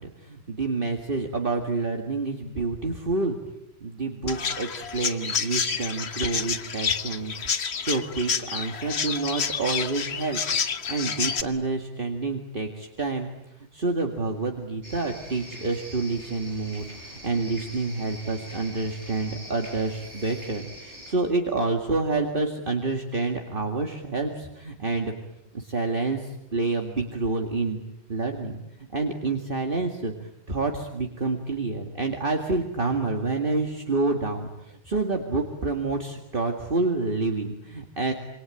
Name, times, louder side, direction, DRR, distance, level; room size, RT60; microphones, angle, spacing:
voice 1, 0.0-3.4 3.8-7.3 7.8-10.4 10.9-13.3 13.7-25.1 25.5-27.8 28.1-28.6 28.9-30.1 30.5-38.1, right 3 dB, 50° right, 3 dB, 2.3 m, -28 dB
Chirp tweet, 4.3-11.4, left 6 dB, 65° left, 1.5 m, -29 dB
sound 1, 14.8-21.1, equal, 75° right, 7.9 m, -43 dB
27.5 x 24.0 x 9.1 m, 0.88 s
omnidirectional pair, 1.2 m